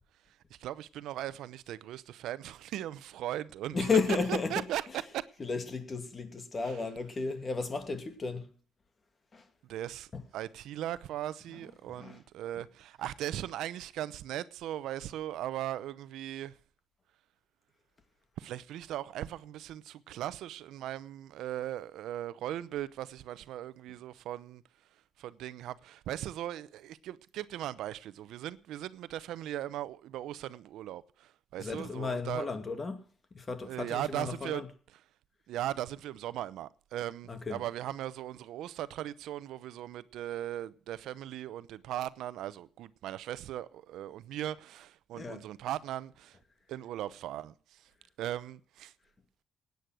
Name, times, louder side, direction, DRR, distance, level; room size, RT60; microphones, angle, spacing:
voice 1, 0.6-3.8 4.3-4.8 5.1-5.2 9.7-10.1 10.3-16.5 18.4-24.6 25.2-32.5 33.6-34.6 35.5-46.4 46.7-47.5 48.2-48.9, right 12 dB, 85° right, 0.7 m, -38 dB
voice 2, 3.7-5.0 5.4-8.5 9.3-9.5 10.1-10.2 12.0-12.2 31.6-33.0 33.3-34.7 37.3-37.6 45.2-45.4, left 4 dB, 35° left, 2.4 m, -33 dB
17.0 x 9.5 x 6.3 m
cardioid pair, 90°, 0 cm